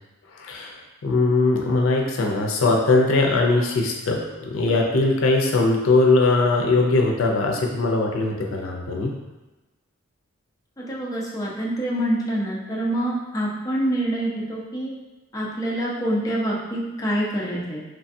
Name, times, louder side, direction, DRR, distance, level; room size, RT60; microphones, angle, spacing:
voice 1, 0.4-0.8 1.0-9.1, left 3 dB, 85° left, 0 dB, 0.4 m, -20 dB
voice 2, 10.8-14.9 15.3-17.8, right 1 dB, 15° left, -5 dB, 0.4 m, -26 dB
3.2 x 2.2 x 2.6 m, 1.1 s
head